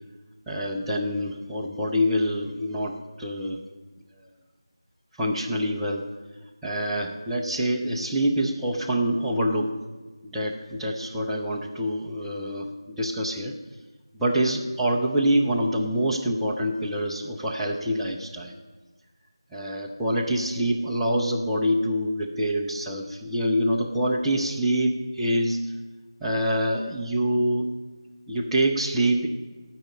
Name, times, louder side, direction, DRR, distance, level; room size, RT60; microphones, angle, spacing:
voice 1, 0.5-3.6 5.2-6.0 6.6-9.7 10.2-13.6 14.2-18.5 19.5-25.6 26.2-27.7 28.3-29.3, equal, ahead, -7 dB, 0.6 m, -26 dB
15.0 x 6.0 x 8.6 m, 1.3 s
figure-of-eight pair, 165°, 3 cm